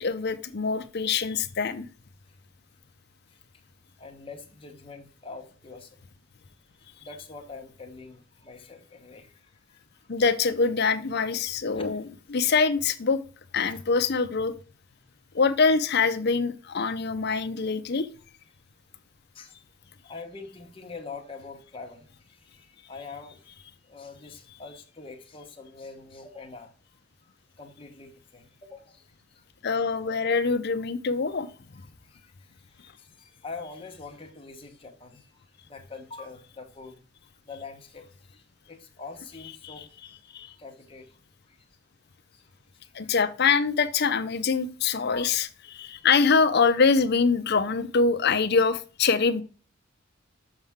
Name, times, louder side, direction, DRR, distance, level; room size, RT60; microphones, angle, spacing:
voice 1, 0.0-1.9 10.1-12.0 12.3-13.2 13.5-14.6 15.3-18.1 29.6-31.8 39.6-39.7 40.3-40.5 42.9-49.4, left 5 dB, 55° left, 0.6 m, -24 dB
voice 2, 4.0-6.0 6.9-9.8 11.7-12.0 13.7-13.8 19.3-19.6 20.0-26.7 27.6-29.4 31.8-37.0 37.4-41.6 42.3-43.1 45.1-45.2, left 4 dB, 25° left, 1.2 m, -45 dB
6.8 x 5.7 x 3.6 m
head